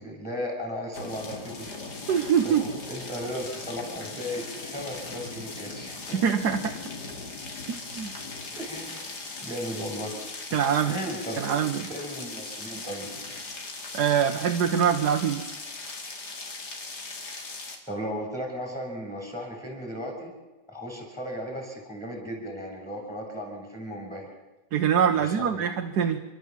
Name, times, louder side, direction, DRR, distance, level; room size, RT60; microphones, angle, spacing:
voice 1, 0.0-1.7 2.4-6.2 8.5-9.1 9.4-10.1 10.5-11.4 11.9-13.1 17.9-20.3 20.7-24.3 25.1-25.6, equal, ahead, 1 dB, 6.0 m, -36 dB
sound 1, 0.9-17.8, left 3 dB, 85° left, 2.9 m, -39 dB
voice 2, 2.1-2.6 6.1-6.7 7.7-8.1 10.5-10.9 11.4-11.9 13.9-15.5 24.7-26.2, right 8 dB, 80° right, 4 dB, 1.6 m, -24 dB
30.0 x 12.5 x 7.3 m, 1.2 s
omnidirectional pair, 1.7 m